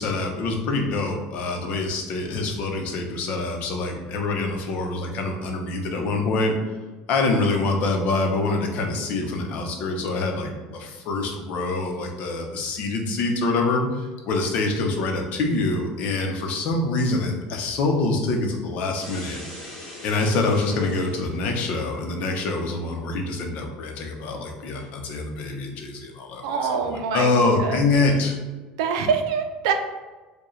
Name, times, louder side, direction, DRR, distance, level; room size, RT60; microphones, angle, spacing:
voice 1, 0.0-6.5 7.1-19.4 20.0-28.4, left 3 dB, 55° left, 2 dB, 0.7 m, -25 dB
sound 1, 19.0-21.5, left 1 dB, 15° left, 1.3 m, -41 dB
voice 2, 26.4-27.3 27.6-28.1 28.8-29.7, right 6 dB, 90° right, 6 dB, 0.5 m, -25 dB
4.5 x 2.3 x 3.1 m, 1.2 s
supercardioid pair, 130°, 3 cm